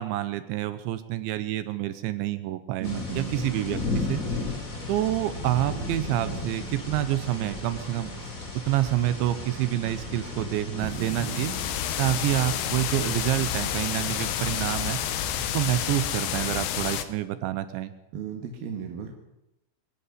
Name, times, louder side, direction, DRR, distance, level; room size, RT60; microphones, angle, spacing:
voice 1, 0.0-4.2 4.9-8.1 8.5-11.5 12.0-15.0 15.5-17.9, right 14 dB, 75° right, 12 dB, 3.1 m, -28 dB
sound 1, 2.8-15.9, left 2 dB, 20° left, 2.9 m, -35 dB
voice 2, 2.8-3.4 10.8-11.4 18.1-19.1, right 7 dB, 60° right, 3 dB, 3.1 m, -35 dB
sound 2, 10.8-17.0, left 11 dB, 75° left, 3.4 m, -30 dB
24.5 x 11.5 x 9.8 m, 0.89 s
omnidirectional pair, 5.6 m